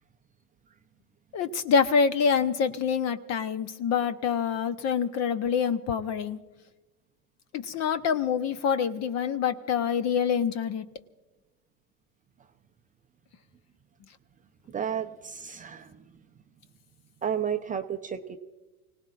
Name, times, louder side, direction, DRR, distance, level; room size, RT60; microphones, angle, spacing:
voice 1, 1.3-6.4 7.5-10.9, left 6 dB, 35° left, 10 dB, 1.0 m, -26 dB
voice 2, 14.7-16.2 17.2-18.4, right 8 dB, 20° right, 6 dB, 0.7 m, -32 dB
29.5 x 18.5 x 2.5 m, 1.1 s
hypercardioid pair, 95°, 44 cm